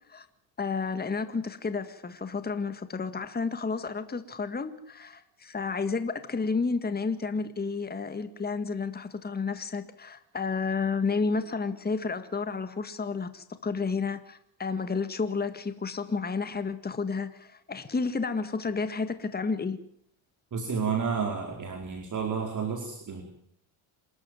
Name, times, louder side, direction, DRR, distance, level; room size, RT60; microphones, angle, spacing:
voice 1, 0.6-19.8, left 4 dB, 20° left, 11 dB, 1.9 m, -31 dB
voice 2, 20.5-23.2, right 6 dB, 35° right, 2 dB, 4.6 m, -31 dB
27.5 x 13.0 x 9.3 m, 0.70 s
cardioid pair, 105°, 48 cm